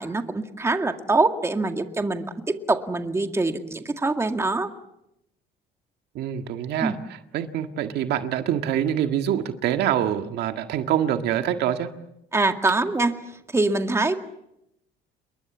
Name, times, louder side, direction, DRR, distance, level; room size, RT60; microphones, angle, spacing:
voice 1, 0.0-2.2 2.7-4.7 6.8-7.0 12.3-13.2 13.5-14.2, right 3 dB, 15° right, 6 dB, 2.1 m, -24 dB
voice 2, 6.2-7.0 7.3-11.9, right 10 dB, 75° right, 7 dB, 1.8 m, -25 dB
28.5 x 22.0 x 7.2 m, 0.82 s
cardioid pair, 110°, 17 cm